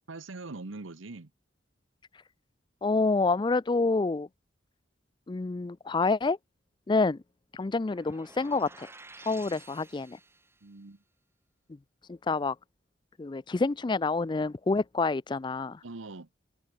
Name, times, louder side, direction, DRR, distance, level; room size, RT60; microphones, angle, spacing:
voice 1, 0.1-1.3 10.6-11.0 15.8-16.3, right 3 dB, 90° right, 1.1 m, -42 dB
voice 2, 2.8-4.3 5.3-6.4 6.9-7.2 7.5-8.9 9.2-10.2 12.1-12.6 13.2-15.8, left 3 dB, 25° left, 0.4 m, -28 dB
sound 1, 7.9-10.7, right 3 dB, 15° right, 1.9 m, -51 dB
head